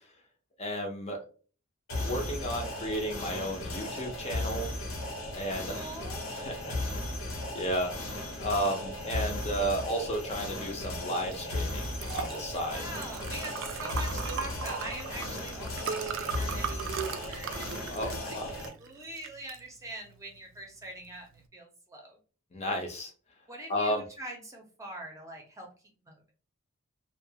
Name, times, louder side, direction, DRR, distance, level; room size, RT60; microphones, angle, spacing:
voice 1, 0.6-1.3 2.0-4.7 5.3-5.7 6.3-6.8 7.3-8.1 8.4-12.8 17.9-18.5 22.5-23.1 23.7-24.0, equal, 30° left, 2 dB, 0.5 m, -33 dB
sound 1, 1.9-18.7, left 1 dB, 70° left, 0.8 m, -36 dB
voice 2, 5.7-6.3 12.7-22.2 23.5-25.7 26.0-26.2, right 1 dB, 15° right, 1 dB, 0.6 m, -44 dB
Liquid, 11.2-21.4, right 7 dB, 65° right, 0.3 m, -39 dB
2.3 x 2.2 x 2.7 m, 0.38 s
head